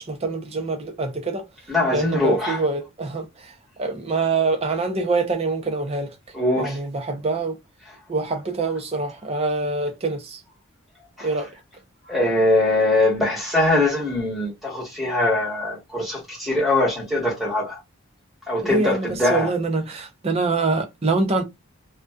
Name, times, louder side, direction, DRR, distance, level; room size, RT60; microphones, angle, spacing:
voice 1, 0.0-1.5 1.9-6.2 6.6-7.6 8.1-10.4 11.2-11.5 18.6-21.4, right 3 dB, 25° right, 0.5 m, -25 dB
voice 2, 1.7-2.6 6.3-6.8 11.2-11.3 12.1-17.8 18.5-19.5, left 2 dB, ahead, 1.1 m, -22 dB
2.5 x 2.3 x 2.2 m
head